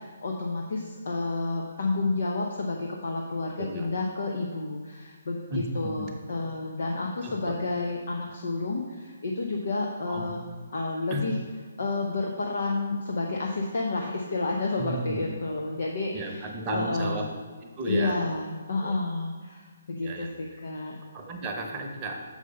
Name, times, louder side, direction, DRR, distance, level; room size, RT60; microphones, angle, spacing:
voice 1, 0.0-10.4 10.7-11.4 11.8-17.3 17.9-21.0, left 3 dB, 60° left, 0 dB, 0.7 m, -30 dB
voice 2, 3.6-3.9 5.5-6.2 7.2-7.6 10.1-10.3 11.1-11.3 14.8-15.4 16.1-17.3 17.6-18.2 18.8-18.9 20.0-20.3 21.1-22.2, right 1 dB, 20° right, 1 dB, 0.9 m, -33 dB
6.5 x 4.9 x 5.3 m, 1.5 s
figure-of-eight pair, 135°, 0 cm